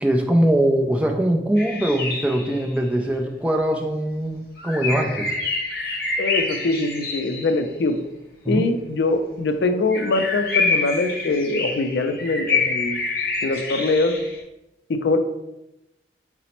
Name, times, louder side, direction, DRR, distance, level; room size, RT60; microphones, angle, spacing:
voice 1, 0.0-5.3 8.4-8.7, right 1 dB, 5° right, 2 dB, 0.3 m, -21 dB
sound 1, 1.6-2.8 4.6-7.6 9.9-14.4, left 3 dB, 55° left, 0.7 m, -27 dB
voice 2, 6.2-8.0 8.5-13.0 13.4-14.1 14.9-15.2, left 2 dB, 70° left, 7 dB, 0.4 m, -23 dB
4.0 x 2.0 x 4.3 m, 0.93 s
head